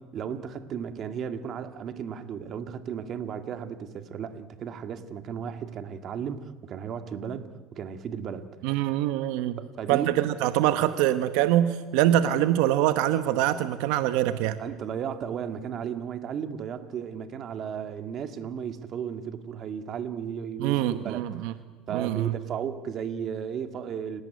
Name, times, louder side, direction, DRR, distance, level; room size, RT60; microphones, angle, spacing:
voice 1, 0.1-8.5 9.8-10.1 14.6-21.3 21.9-24.2, right 8 dB, 45° right, 8 dB, 1.9 m, -34 dB
voice 2, 8.6-9.5 9.9-14.6 20.6-21.5 21.9-22.3, right 12 dB, 80° right, 10 dB, 1.1 m, -24 dB
29.5 x 18.0 x 9.5 m, 1.3 s
cardioid pair, 130°, 0 cm